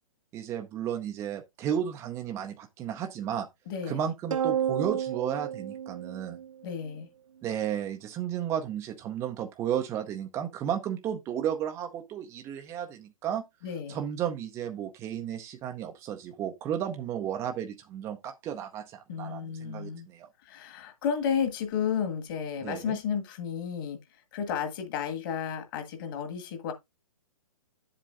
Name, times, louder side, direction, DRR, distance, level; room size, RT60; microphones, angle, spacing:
voice 1, 0.3-3.5 3.9-6.4 7.4-13.4 13.9-20.3 22.6-23.0, right 9 dB, 15° right, 0.6 m, -33 dB
voice 2, 3.7-4.1 6.6-7.1 13.6-14.0 19.1-20.1 20.4-26.7, left 7 dB, 35° left, 1.8 m, -32 dB
sound 1, 4.3-6.9, right 9 dB, 65° right, 0.4 m, -31 dB
10.5 x 7.6 x 2.5 m
figure-of-eight pair, 125°, 18 cm